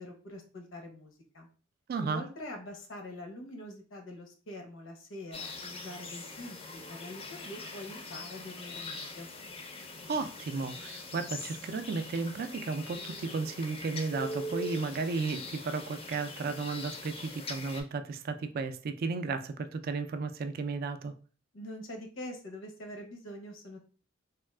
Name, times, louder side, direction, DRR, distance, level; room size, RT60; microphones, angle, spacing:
voice 1, 0.0-1.5 2.0-9.3 21.5-23.8, left 1 dB, 80° left, 0.7 m, -44 dB
voice 2, 1.9-2.2 10.1-21.1, right 4 dB, 50° right, 0.3 m, -34 dB
sound 1, 5.3-17.8, left 2 dB, 30° left, 0.4 m, -42 dB
3.5 x 2.3 x 2.2 m
head